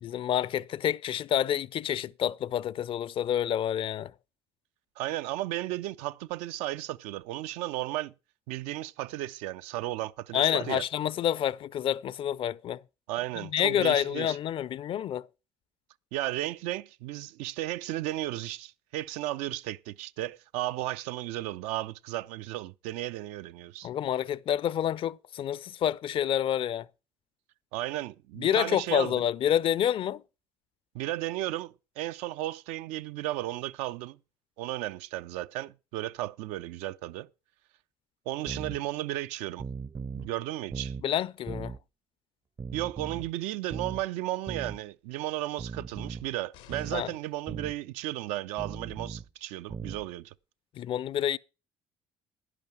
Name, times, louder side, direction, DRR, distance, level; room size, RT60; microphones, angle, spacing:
voice 1, 0.0-4.1 10.3-12.8 13.4-15.3 23.8-26.9 28.4-30.2 41.0-41.8 46.9-47.1 50.8-51.4, left 10 dB, 55° left, 0.5 m, -28 dB
voice 2, 5.0-8.1 8.5-10.8 13.1-14.4 16.1-23.9 27.7-29.1 30.9-34.2 34.6-37.3 38.3-39.6 40.1-41.0 42.7-50.3, right 15 dB, 85° right, 0.5 m, -34 dB
sound 1, 38.5-38.8 39.6-40.3 40.7-41.1 41.5-41.8 42.6-43.3 43.7-44.0 44.5-44.8 45.6-46.3 46.7-47.0 47.5-47.8 48.6-49.3 49.7-50.1, right 5 dB, 30° right, 0.5 m, -38 dB
sound 2, 46.5-47.4 48.9-49.0, left 12 dB, 90° left, 1.1 m, -55 dB
11.0 x 10.5 x 4.7 m
supercardioid pair, 80°, 11 cm